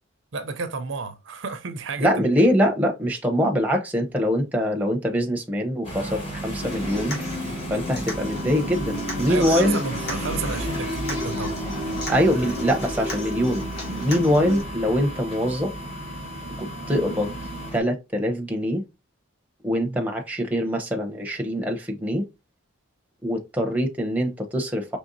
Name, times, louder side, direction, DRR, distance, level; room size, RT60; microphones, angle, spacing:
voice 1, 0.3-2.3 9.3-11.6 19.8-20.0, right 4 dB, 60° right, 0.5 m, -31 dB
voice 2, 2.0-7.2 7.7-9.8 12.1-15.7 16.6-17.4 17.7-18.8 19.6-22.3 23.2-25.0, equal, 10° right, 0.7 m, -23 dB
sound 1, 5.8-17.8, right 1 dB, 30° left, 1.4 m, -34 dB
Human voice / Acoustic guitar, 6.6-14.6, left 1 dB, 50° left, 2.0 m, -32 dB
sound 2, 8.1-17.7, left 2 dB, 75° left, 1.5 m, -42 dB
5.1 x 3.3 x 2.6 m
head